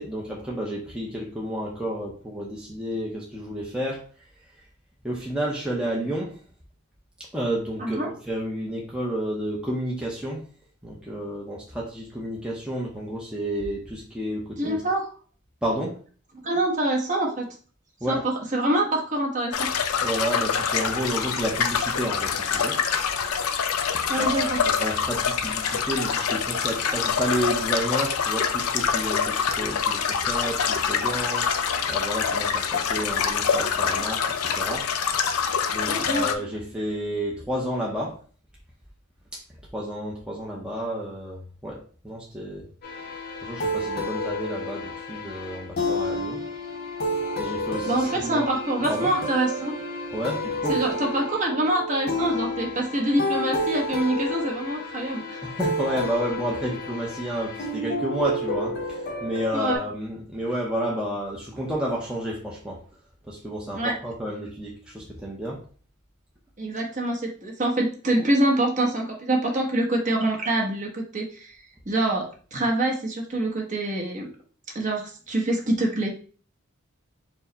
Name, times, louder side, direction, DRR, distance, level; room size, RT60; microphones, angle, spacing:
voice 1, 0.0-4.0 5.0-6.4 7.3-10.4 10.8-14.8 15.6-16.0 18.0-18.2 20.0-22.8 23.9-24.5 24.8-31.5 31.9-34.9 35.7-38.2 39.3-39.4 39.7-42.7 43.4-46.4 47.4-48.5 48.9-49.1 50.1-50.8 55.4-62.8 63.2-65.6, equal, 5° right, -4 dB, 0.6 m, -31 dB
voice 2, 7.8-8.1 14.6-15.0 16.4-17.5 18.1-19.7 24.1-24.6 35.9-36.3 47.8-49.7 50.7-55.4 59.5-59.8 63.7-63.9 66.6-71.6 71.9-74.3 74.7-76.1, right 1 dB, 35° right, -1 dB, 0.9 m, -25 dB
sound 1, 19.5-36.3, left 6 dB, 85° left, 0.4 m, -25 dB
sound 2, 42.8-59.8, left 1 dB, 45° left, 0.7 m, -30 dB
4.6 x 2.1 x 3.9 m, 0.42 s
head